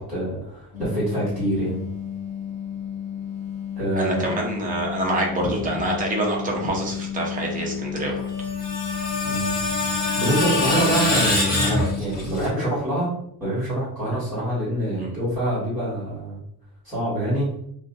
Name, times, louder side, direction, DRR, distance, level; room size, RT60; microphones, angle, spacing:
voice 1, 0.0-1.8 3.8-4.3 5.4-5.6 9.2-9.5 10.1-13.1 13.4-16.4 16.8-17.5, right 1 dB, ahead, -11 dB, 1.4 m, -25 dB
sound 1, 0.7-12.0, left 9 dB, 70° left, 0.8 m, -32 dB
voice 2, 3.9-8.2 15.0-15.1, right 1 dB, 20° right, 0 dB, 0.5 m, -26 dB
Screech, 8.2-12.5, left 2 dB, 25° left, 0.9 m, -25 dB
2.5 x 2.4 x 3.7 m, 0.70 s
cardioid pair, 180°, 38 cm